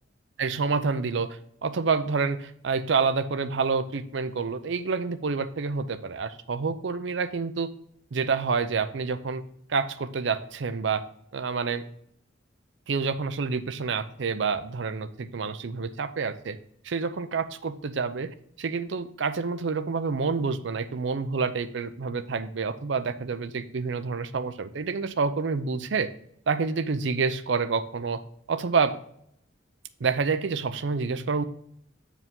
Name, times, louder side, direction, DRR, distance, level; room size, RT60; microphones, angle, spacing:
voice 1, 0.4-7.7 8.1-9.4 9.7-11.1 11.3-11.9 12.9-16.6 16.8-26.1 26.5-28.2 28.5-29.0 30.0-31.4, right 5 dB, 70° right, 11 dB, 0.5 m, -28 dB
7.9 x 4.9 x 3.6 m, 0.70 s
head